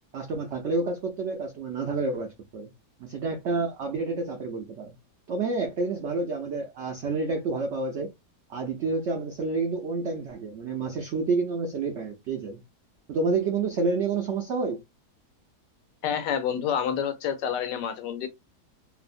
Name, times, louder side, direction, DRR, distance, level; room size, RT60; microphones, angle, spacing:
voice 1, 0.1-2.7 3.0-4.9 5.3-8.1 8.5-12.6 13.1-14.8, right 3 dB, 85° right, 0.6 m, -29 dB
voice 2, 16.0-18.3, left 8 dB, 90° left, 1.3 m, -28 dB
3.1 x 2.0 x 2.5 m
omnidirectional pair, 1.8 m